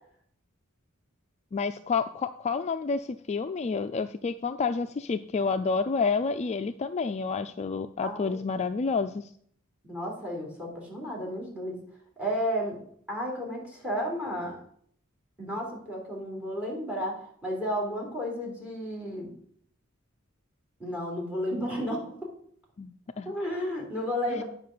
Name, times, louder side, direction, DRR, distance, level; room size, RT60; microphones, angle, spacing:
voice 1, 1.5-9.3 22.8-23.3 24.3-24.4, left 4 dB, 30° left, 9 dB, 0.3 m, -29 dB
voice 2, 8.0-8.4 9.8-11.8 12.2-12.8 13.1-14.6 15.4-19.3 20.8-22.3 23.2-24.4, equal, 5° right, 0 dB, 3.3 m, -32 dB
9.4 x 5.5 x 6.6 m, 0.63 s
head